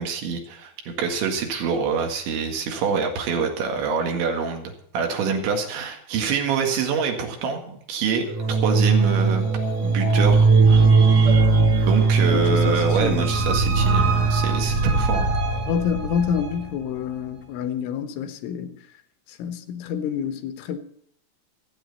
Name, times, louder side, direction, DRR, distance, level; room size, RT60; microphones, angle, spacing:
voice 1, 0.0-9.4 9.8-10.9 11.9-15.3, right 5 dB, 70° right, 4.1 m, -26 dB
sound 1, 8.3-16.6, right 4 dB, 55° right, 2.1 m, -19 dB
voice 2, 12.3-13.3 15.7-18.8 19.4-20.8, left 7 dB, 85° left, 3.6 m, -28 dB
26.0 x 9.1 x 4.1 m
omnidirectional pair, 5.5 m